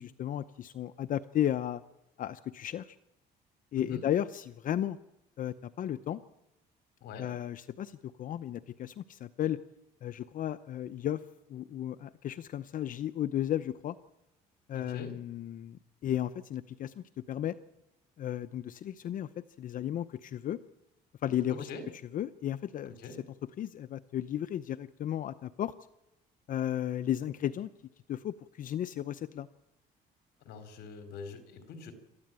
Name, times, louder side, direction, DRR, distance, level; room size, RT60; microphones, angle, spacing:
voice 1, 0.0-1.8 2.2-3.0 3.7-5.0 5.4-6.2 7.1-9.6 10.0-11.2 11.5-14.0 14.7-17.6 18.2-20.6 21.2-21.7 22.1-22.9 23.6-25.7 26.5-27.7 28.1-29.5, left 11 dB, 55° left, 13 dB, 0.7 m, -34 dB
voice 2, 14.7-15.1 21.5-21.8 22.8-23.2 30.4-31.9, left 4 dB, 75° left, 8 dB, 4.1 m, -44 dB
27.5 x 13.5 x 9.0 m, 0.91 s
cardioid pair, 110°, 17 cm